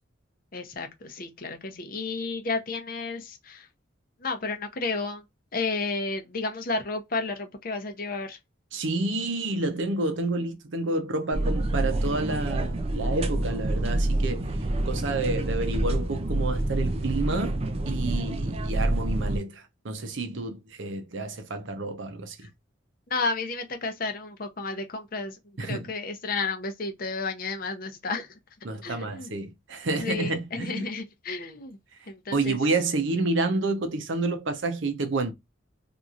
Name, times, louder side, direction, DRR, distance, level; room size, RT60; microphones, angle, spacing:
voice 1, 0.5-3.7 4.2-5.2 5.5-8.4 23.1-25.4 25.6-28.3 28.8-29.3 29.9-31.8 32.1-32.6, left 3 dB, 45° left, 0.7 m, -32 dB
voice 2, 8.7-14.5 14.9-17.6 17.8-22.5 25.6-25.9 28.6-30.9 32.3-35.3, right 2 dB, 70° right, 0.7 m, -29 dB
sound 1, 11.3-19.4, right 1 dB, 30° right, 0.3 m, -27 dB
2.9 x 2.6 x 2.4 m
head